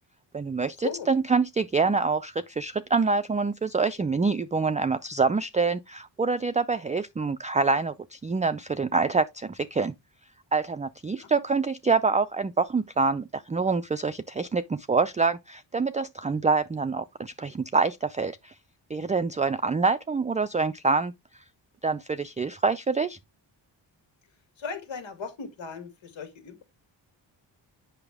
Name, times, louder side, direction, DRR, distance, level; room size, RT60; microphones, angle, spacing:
voice 1, 0.3-9.9 10.5-18.5 18.9-21.1 21.8-23.2, right 4 dB, 20° right, 0.3 m, -26 dB
voice 2, 24.6-26.6, left 6 dB, 90° left, 2.4 m, -37 dB
7.9 x 5.9 x 3.4 m
cardioid pair, 110°, 44 cm